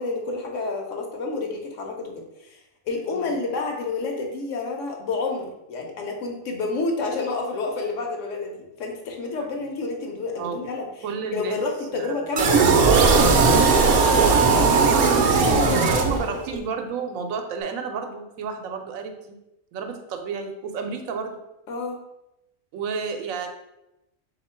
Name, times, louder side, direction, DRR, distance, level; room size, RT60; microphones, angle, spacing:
voice 1, 0.0-2.6 2.9-10.9 11.3-13.9 15.4-16.6 21.7-22.0, left 3 dB, 70° left, 2 dB, 1.0 m, -29 dB
voice 2, 11.0-11.6 12.0-12.5 15.8-19.4 19.7-21.4 22.7-23.5, right 5 dB, 85° right, 5 dB, 1.0 m, -31 dB
sound 1, 12.4-16.6, right 4 dB, 60° right, 0.6 m, -18 dB
3.6 x 2.7 x 4.3 m, 0.90 s
omnidirectional pair, 1.4 m